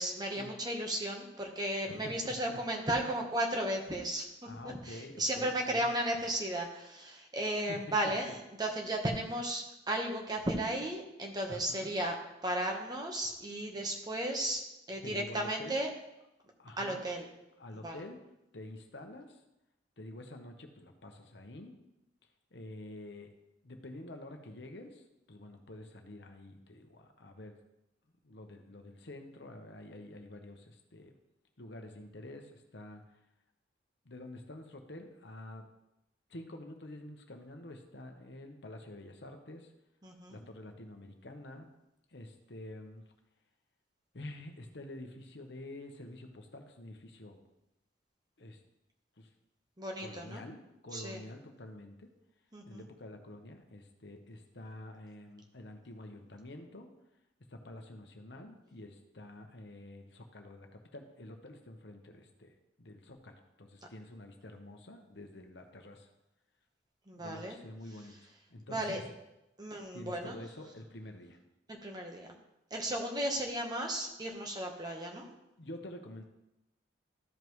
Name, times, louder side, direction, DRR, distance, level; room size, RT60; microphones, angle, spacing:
voice 1, 0.0-12.1 12.4-14.6 14.9-15.9 16.8-17.3 17.8-18.0 40.0-40.4 49.8-50.4 50.9-51.2 52.5-52.8 67.1-67.6 68.7-69.0 69.6-70.4 71.7-72.3 72.7-75.3, right 1 dB, 20° right, 1 dB, 1.1 m, -35 dB
voice 2, 1.8-2.6 4.5-5.9 7.5-8.1 11.5-11.9 15.0-15.8 16.6-17.1 17.6-18.2 18.5-19.4 20.0-21.8 22.5-23.3 23.6-27.6 28.2-31.1 31.6-33.0 34.0-35.6 36.3-39.7 40.3-41.7 42.1-43.0 44.1-47.4 48.4-48.6 49.2-49.3 50.0-52.1 52.7-56.9 57.5-62.5 62.8-66.1 67.1-68.1 68.5-69.0 69.9-71.4 75.6-76.2, left 1 dB, 60° left, 4 dB, 1.0 m, -48 dB
13.5 x 5.3 x 3.1 m, 0.90 s
head